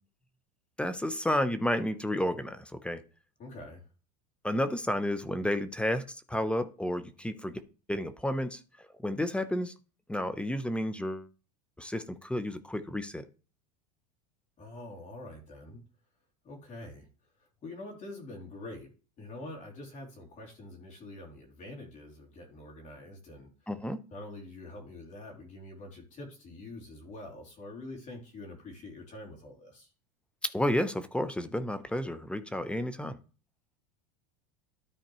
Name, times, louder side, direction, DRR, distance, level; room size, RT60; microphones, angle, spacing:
voice 1, 0.8-3.0 4.4-7.6 7.9-8.6 9.0-9.7 10.1-11.3 11.8-13.3 23.7-24.0 30.5-33.2, left 1 dB, 5° left, 12 dB, 0.6 m, -31 dB
voice 2, 3.4-3.9 14.6-15.8 16.4-17.1 17.4-18.9 19.2-23.5 24.1-29.9, left 2 dB, 35° left, -1 dB, 3.0 m, -45 dB
13.0 x 4.3 x 3.0 m, 0.35 s
supercardioid pair, 115°, 21 cm